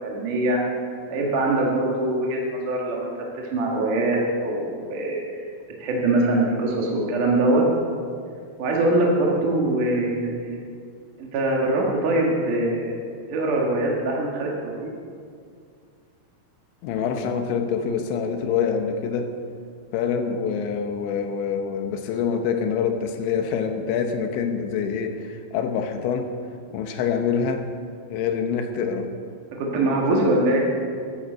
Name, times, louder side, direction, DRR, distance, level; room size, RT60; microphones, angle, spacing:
voice 1, 0.0-0.6 1.1-3.1 3.4-5.4 5.8-7.6 8.6-10.6 11.2-14.9 29.5-30.6, right 2 dB, 55° right, -2 dB, 2.5 m, -23 dB
voice 2, 16.8-19.4 19.9-26.3 26.7-27.7 28.1-29.1 30.1-30.3, left 6 dB, 75° left, 6 dB, 3.1 m, -26 dB
14.0 x 12.0 x 6.7 m, 2.2 s
omnidirectional pair, 5.7 m